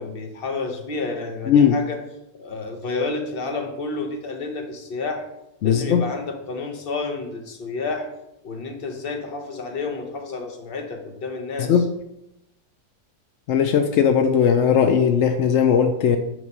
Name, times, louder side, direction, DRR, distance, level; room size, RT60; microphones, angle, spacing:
voice 1, 0.0-2.0 2.3-5.3 5.6-8.1 8.4-11.8, left 3 dB, 40° left, 4 dB, 1.0 m, -30 dB
voice 2, 5.6-6.0 11.6-11.9 13.5-16.2, left 7 dB, 75° left, 7 dB, 0.6 m, -18 dB
9.2 x 3.1 x 5.3 m, 0.86 s
omnidirectional pair, 1.8 m